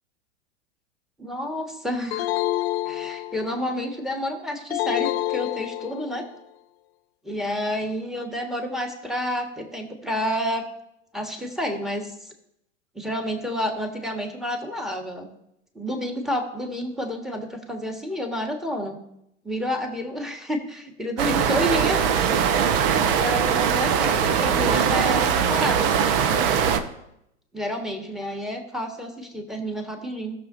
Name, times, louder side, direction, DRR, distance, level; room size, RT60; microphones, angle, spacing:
voice 1, 1.2-2.3 2.8-6.2 7.2-10.6 11.1-12.3 12.9-15.3 15.7-19.0 19.4-22.1 22.7-26.4 27.5-30.3, equal, ahead, 3 dB, 1.6 m, -30 dB
sound 1, 2.1-3.7 4.7-6.3, left 15 dB, 55° left, 0.9 m, -28 dB
sound 2, 21.2-26.8, right 7 dB, 50° right, 1.0 m, -21 dB
17.5 x 6.6 x 2.6 m, 0.80 s
figure-of-eight pair, 95°, 36 cm